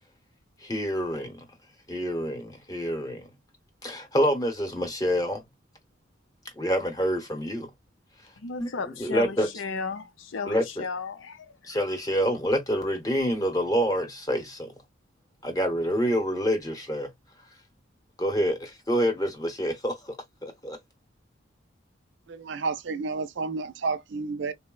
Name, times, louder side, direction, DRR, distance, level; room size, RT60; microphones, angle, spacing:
voice 1, 0.6-1.5 1.9-3.3 3.8-5.5 6.6-7.7 8.6-9.5 10.4-10.9 11.6-14.7 15.4-17.1 18.2-20.2 20.4-20.8, equal, 20° left, 0.8 m, -27 dB
voice 2, 8.4-11.5, left 4 dB, 75° left, 0.6 m, -34 dB
voice 3, 22.3-24.5, right 4 dB, 60° right, 0.4 m, -31 dB
3.8 x 2.1 x 2.2 m
head